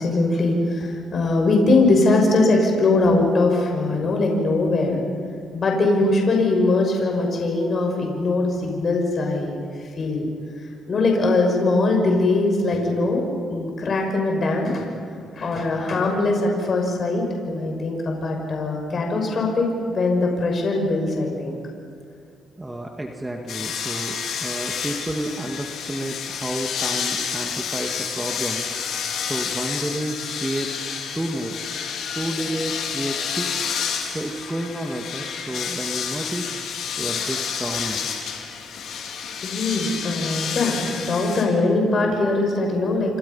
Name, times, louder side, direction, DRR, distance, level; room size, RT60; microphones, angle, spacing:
voice 1, 0.0-5.0 5.5-9.7 10.0-10.3 10.9-14.9 15.4-21.6 39.4-43.2, left 2 dB, 45° left, 1 dB, 6.1 m, -21 dB
voice 2, 22.6-28.7 29.2-30.9 31.1-31.6 32.1-33.6 34.1-36.5 37.0-38.1, right 1 dB, 15° right, 2 dB, 2.2 m, -30 dB
sound 1, 23.5-41.4, left 7 dB, 75° left, 4.1 m, -29 dB
28.0 x 28.0 x 5.7 m, 2.4 s
cardioid pair, 90°, 0 cm